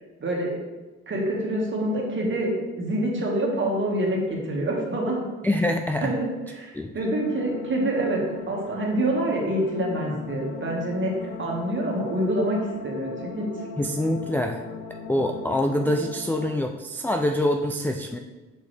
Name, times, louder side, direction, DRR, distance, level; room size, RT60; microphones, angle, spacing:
voice 1, 0.2-0.6 1.1-2.5 2.8-5.2 6.0-11.1 11.4-13.5, right 1 dB, 40° right, -1 dB, 1.8 m, -26 dB
voice 2, 5.4-6.2 6.7-6.9 13.8-14.6 15.1-18.2, left 1 dB, 5° left, 3 dB, 0.3 m, -25 dB
sound 1, 7.0-16.5, left 6 dB, 80° left, 0.9 m, -39 dB
6.3 x 5.3 x 3.3 m, 1.2 s
cardioid pair, 90°, 30 cm